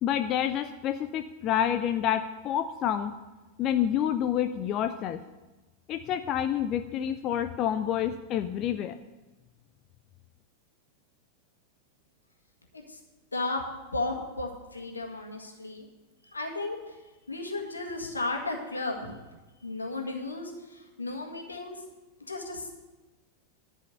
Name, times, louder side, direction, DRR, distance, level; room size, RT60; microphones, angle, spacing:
voice 1, 0.0-3.1 3.6-5.2 5.9-9.0, left 10 dB, 35° left, 9 dB, 0.5 m, -28 dB
voice 2, 13.3-13.6 13.9-15.8 16.2-19.1 19.6-21.8 22.3-22.7, left 2 dB, 80° left, 2 dB, 1.7 m, -34 dB
11.0 x 5.6 x 8.0 m, 1.2 s
figure-of-eight pair, 90°, 0 cm